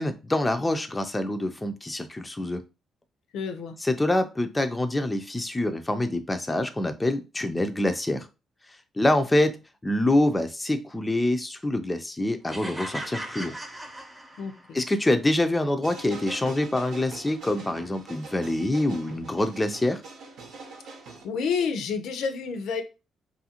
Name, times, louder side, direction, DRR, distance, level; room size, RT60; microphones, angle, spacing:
voice 1, 0.0-2.6 3.8-8.3 9.0-9.6 9.8-13.6 14.7-20.0, left 1 dB, 15° left, 0.4 m, -25 dB
voice 2, 3.3-3.8 14.4-14.8 21.2-22.8, left 5 dB, 80° left, 0.5 m, -29 dB
sound 1, 12.5-14.8, right 1 dB, 15° right, 0.7 m, -37 dB
sound 2, 15.8-21.2, right 3 dB, 75° right, 0.8 m, -43 dB
2.7 x 2.5 x 2.8 m
cardioid pair, 90°, 0 cm